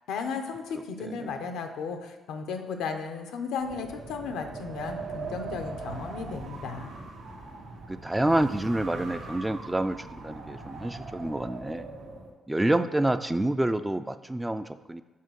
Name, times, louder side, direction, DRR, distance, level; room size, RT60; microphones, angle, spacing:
voice 1, 0.1-6.9, left 5 dB, 90° left, 5 dB, 0.7 m, -35 dB
voice 2, 1.0-1.4 7.9-11.9 12.5-15.0, right 1 dB, 10° right, 11 dB, 0.3 m, -28 dB
Wind, 3.6-12.3, right 3 dB, 90° right, 1.3 m, -40 dB
5.7 x 5.0 x 6.3 m, 1.2 s
cardioid pair, 90°, 0 cm